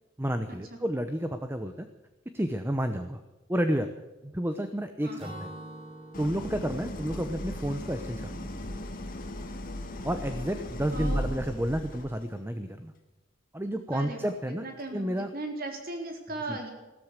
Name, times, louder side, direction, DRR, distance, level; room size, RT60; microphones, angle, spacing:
voice 1, 0.2-1.9 2.3-3.2 3.5-3.9 4.2-5.5 6.2-8.5 10.0-12.9 13.5-14.7 14.9-15.3 16.5-16.6, equal, 10° right, 8 dB, 0.9 m, -31 dB
Acoustic guitar / Strum, 5.2-8.8, right 1 dB, 30° right, 4.2 m, -46 dB
Idling, 6.1-12.2, equal, 45° left, 2.1 m, -36 dB
voice 2, 10.9-11.6 13.9-16.7, right 2 dB, 50° right, 3 dB, 3.8 m, -38 dB
15.5 x 13.5 x 6.7 m, 1.1 s
head